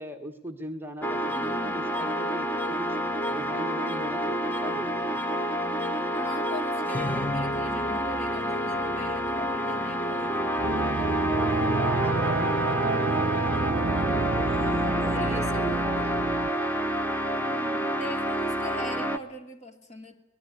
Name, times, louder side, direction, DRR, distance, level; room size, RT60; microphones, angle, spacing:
voice 1, 0.0-3.0 3.3-5.2 11.3-13.2 14.2-16.0, right 1 dB, 10° right, 4 dB, 1.4 m, -40 dB
sound 1, 1.0-19.2, equal, 10° left, 1.1 m, -28 dB
voice 2, 1.3-1.9 6.1-10.7 14.4-16.3 17.3-20.1, left 1 dB, 35° left, 5 dB, 2.7 m, -41 dB
sound 2, 10.6-16.5, right 3 dB, 55° right, 1.0 m, -29 dB
24.5 x 19.5 x 9.7 m, 0.86 s
head